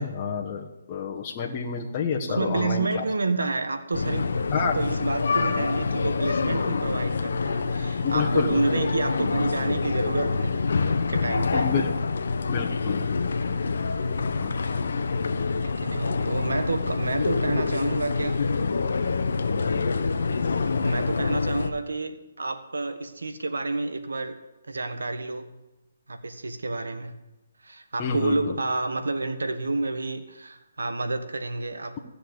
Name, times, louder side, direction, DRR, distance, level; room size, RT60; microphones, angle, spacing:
voice 1, 0.0-3.0 4.5-4.9 8.0-8.6 11.5-11.9 12.5-13.1 14.4-14.5 28.0-28.6, left 6 dB, 30° left, -1 dB, 1.3 m, -29 dB
voice 2, 2.3-11.7 15.6-18.7 20.8-24.4 24.7-25.5 26.1-27.1 27.6-32.0, right 3 dB, 85° right, 8 dB, 1.6 m, -29 dB
sound 1, 3.9-21.7, left 4 dB, 70° left, 1.0 m, -26 dB
16.0 x 6.9 x 8.1 m, 1.0 s
hypercardioid pair, 150°, 0 cm